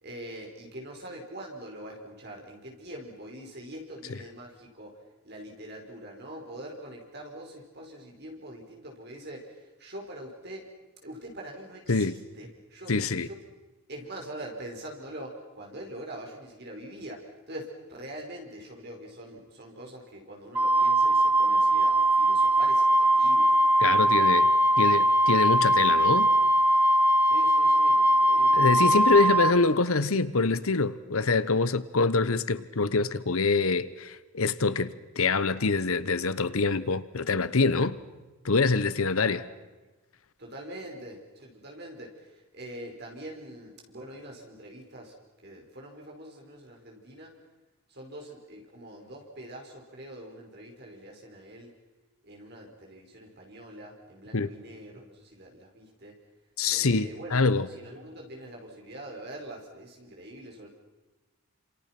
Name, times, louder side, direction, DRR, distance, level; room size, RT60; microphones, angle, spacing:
voice 1, 0.0-4.9 5.2-10.7 11.0-13.4 13.9-23.6 27.2-28.6 39.2-39.4 40.4-45.1 45.4-47.3 47.9-51.7 52.2-56.2 56.6-60.7, right 1 dB, 45° right, 5.0 m, -43 dB
voice 2, 12.9-13.3 23.8-24.5 24.8-26.3 28.5-38.0 38.4-39.4 54.3-54.5 56.6-57.7, left 4 dB, 75° left, 1.0 m, -25 dB
Wind instrument woodwind instrument, 20.6-29.5, right 1 dB, 10° right, 1.1 m, -21 dB
28.5 x 27.0 x 6.0 m
head